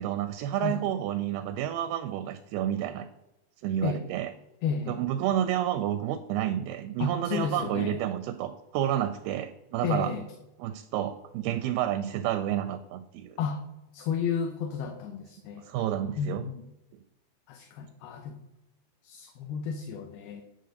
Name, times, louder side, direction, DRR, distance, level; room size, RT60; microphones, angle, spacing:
voice 1, 0.0-3.1 3.6-4.3 4.9-10.1 10.6-13.4 15.6-16.5, right 11 dB, 85° right, 11 dB, 2.2 m, -30 dB
voice 2, 4.6-5.0 7.0-8.0 9.8-10.3 13.4-13.6 13.9-15.6 16.2-16.6 17.5-18.4 19.0-20.4, left 6 dB, 75° left, 4 dB, 2.5 m, -32 dB
10.5 x 4.1 x 6.4 m, 0.95 s
omnidirectional pair, 4.7 m